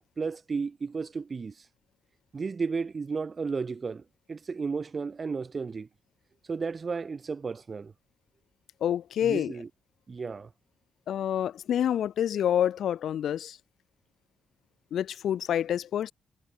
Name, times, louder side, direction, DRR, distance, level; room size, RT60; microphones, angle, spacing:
voice 1, 0.2-1.5 2.3-4.0 4.3-5.9 6.5-7.9 9.2-9.7 10.1-10.5, right 5 dB, 35° right, 7.6 m, -33 dB
voice 2, 8.8-9.6 11.1-13.6 14.9-16.1, left 10 dB, 75° left, 1.4 m, -27 dB
cardioid pair, 95°, 0 cm